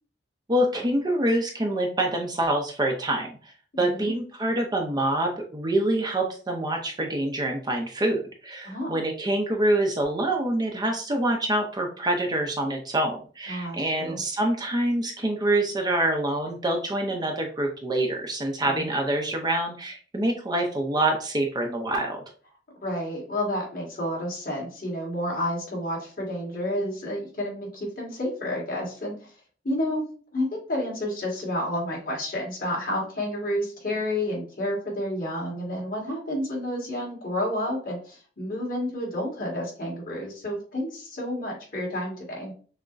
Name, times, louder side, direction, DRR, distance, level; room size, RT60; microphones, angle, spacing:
voice 1, 0.5-22.2, right 1 dB, 25° right, 2 dB, 0.6 m, -26 dB
voice 2, 3.7-4.1 8.6-9.0 13.5-14.2 18.6-18.9 22.8-29.3 29.6-30.1 30.3-42.5, left 1 dB, 50° left, -3 dB, 1.7 m, -30 dB
5.9 x 2.1 x 2.5 m, 0.41 s
head